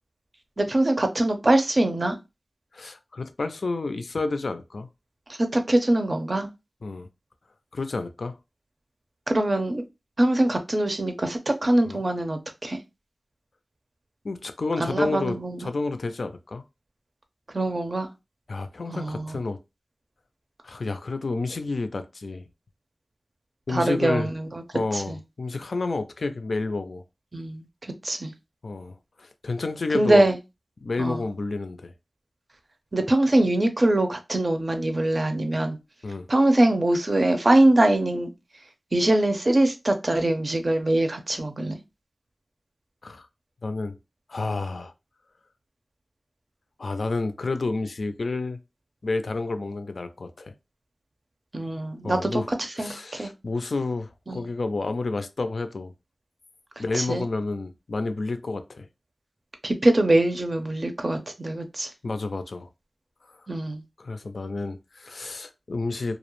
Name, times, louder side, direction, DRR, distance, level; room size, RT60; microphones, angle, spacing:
voice 1, 0.6-2.2 5.4-6.5 9.3-9.8 10.2-12.8 14.8-15.6 17.5-18.1 18.9-19.4 23.7-24.6 24.9-25.2 27.3-28.3 29.9-30.4 31.0-31.2 32.9-35.8 36.3-38.3 38.9-41.8 51.5-53.3 54.3-54.5 56.8-57.3 59.6-61.9 63.5-63.8, right 1 dB, 45° right, 0.5 m, -23 dB
voice 2, 2.7-4.9 6.8-7.1 7.7-8.4 11.9-12.0 14.2-16.6 18.5-19.6 20.6-22.4 23.7-24.3 24.7-27.0 28.6-30.2 30.8-31.9 36.0-36.3 43.0-43.3 43.6-44.0 44.3-44.9 46.8-48.6 49.0-50.5 52.0-52.5 52.8-55.9 56.8-58.9 62.0-62.7 64.0-66.2, left 3 dB, 75° left, 0.3 m, -30 dB
2.3 x 2.0 x 3.0 m
wide cardioid pair, 65°, 0 cm